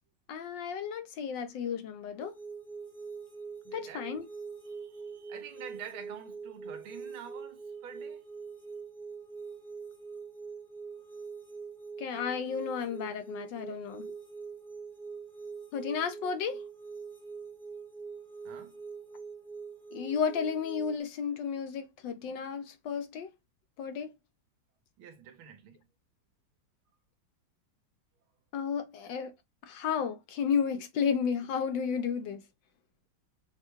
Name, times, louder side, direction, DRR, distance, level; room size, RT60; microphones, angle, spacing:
voice 1, 0.3-2.3 3.7-4.3 12.0-14.0 15.7-16.6 19.9-23.3 23.8-24.1 28.5-29.3 29.6-32.4, left 6 dB, 75° left, 1.3 m, -33 dB
sound 1, 2.2-21.0, right 5 dB, ahead, 0.8 m, -44 dB
voice 2, 3.7-4.0 4.7-8.2 18.5-18.8 25.0-25.9, right 8 dB, 85° right, 1.8 m, -47 dB
6.6 x 2.3 x 3.0 m
omnidirectional pair, 2.2 m